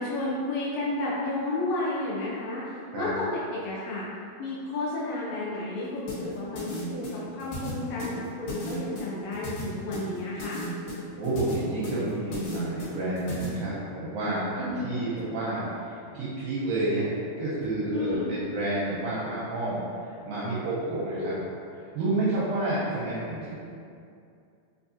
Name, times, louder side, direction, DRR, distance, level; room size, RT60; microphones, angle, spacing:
voice 1, 0.0-4.1 4.4-10.6 14.6-15.0 17.9-18.3 21.2-21.3, left 2 dB, 80° left, -8 dB, 2.2 m, -32 dB
sound 1, 6.1-13.5, left 1 dB, 65° left, 2.5 m, -36 dB
voice 2, 11.2-17.1 17.4-19.8 20.3-21.4 21.8-23.6, right 2 dB, 80° right, -8 dB, 2.0 m, -30 dB
5.9 x 2.4 x 2.7 m, 2.4 s
omnidirectional pair, 4.5 m